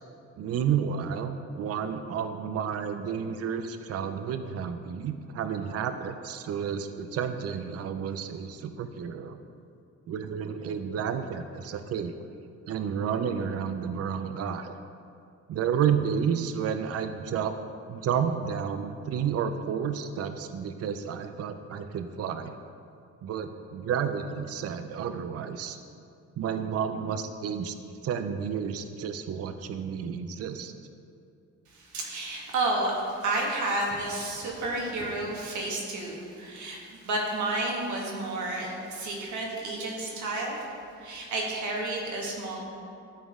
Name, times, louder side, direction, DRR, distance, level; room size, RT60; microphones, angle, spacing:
voice 1, 0.4-9.4 10.1-12.2 12.7-14.8 15.5-17.5 17.9-22.5 23.2-25.8 26.4-27.7 28.0-30.7, right 7 dB, 55° right, 9 dB, 0.5 m, -31 dB
voice 2, 31.7-40.7 41.0-42.6, right 2 dB, 75° right, -2 dB, 1.8 m, -31 dB
12.5 x 4.3 x 3.6 m, 2.5 s
cardioid pair, 90°, 30 cm